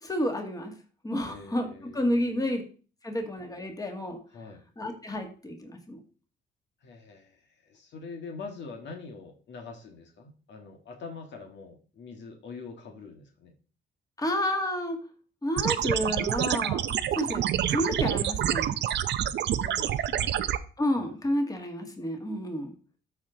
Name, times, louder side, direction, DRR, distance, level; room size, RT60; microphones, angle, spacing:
voice 1, 0.0-0.7 1.0-2.6 3.0-4.2 4.8-6.0 14.2-15.0 15.4-16.8 17.1-18.8 20.8-22.7, left 1 dB, 20° left, 4 dB, 1.9 m, -30 dB
voice 2, 1.2-2.5 4.3-4.6 6.8-13.5 19.2-20.5 20.9-21.3, left 4 dB, 65° left, 3 dB, 1.6 m, -44 dB
sound 1, 15.6-20.6, right 10 dB, 60° right, 0.6 m, -27 dB
13.0 x 4.8 x 3.8 m, 0.39 s
cardioid pair, 90°, 20 cm